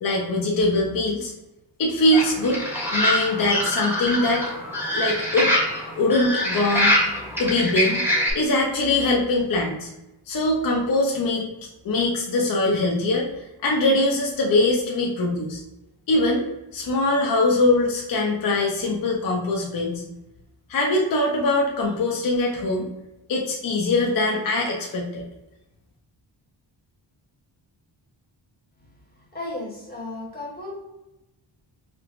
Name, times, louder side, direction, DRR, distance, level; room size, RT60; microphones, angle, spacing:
voice 1, 0.0-1.3 1.8-2.6 2.9-4.5 4.9-5.5 6.0-6.9 7.4-8.1 8.3-9.9 10.3-11.5 11.8-13.3 13.6-15.6 16.1-16.5 16.7-20.0 20.7-22.9 23.3-25.3, left 2 dB, 50° left, -1 dB, 0.5 m, -22 dB
sound 1, 2.1-8.3, equal, 5° right, 0.9 m, -24 dB
voice 2, 29.3-30.7, left 2 dB, 20° left, -5 dB, 1.0 m, -34 dB
4.4 x 2.0 x 2.4 m, 0.96 s
wide cardioid pair, 170°, 46 cm